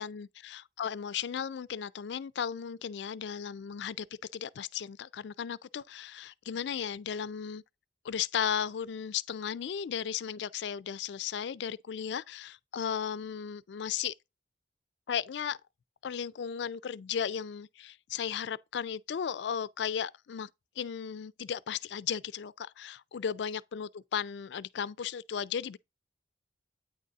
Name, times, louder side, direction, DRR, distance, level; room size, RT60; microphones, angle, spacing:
voice 1, 0.0-4.1 4.3-7.6 8.0-14.1 15.1-15.6 16.0-20.5 20.8-25.8, left 8 dB, 65° left, 0.4 m, -35 dB
9.0 x 4.0 x 3.5 m
head